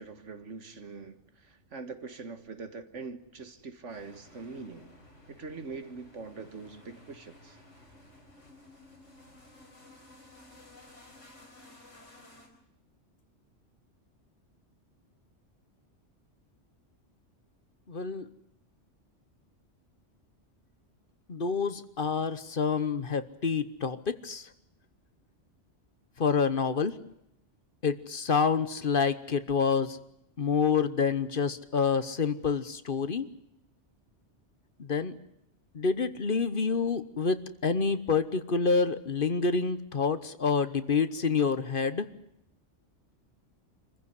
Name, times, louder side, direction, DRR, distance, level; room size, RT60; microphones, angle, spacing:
voice 1, 0.0-4.9 5.3-7.6, right 4 dB, 80° right, 9 dB, 2.0 m, -43 dB
sound 1, 3.9-12.5, left 1 dB, 90° left, 4.8 m, -55 dB
voice 2, 17.9-18.3 21.3-24.5 26.2-27.0 27.8-30.0 30.4-33.3 34.8-35.2 35.7-42.1, left 5 dB, 50° left, 13 dB, 1.2 m, -28 dB
26.0 x 15.5 x 9.6 m, 0.81 s
omnidirectional pair, 1.2 m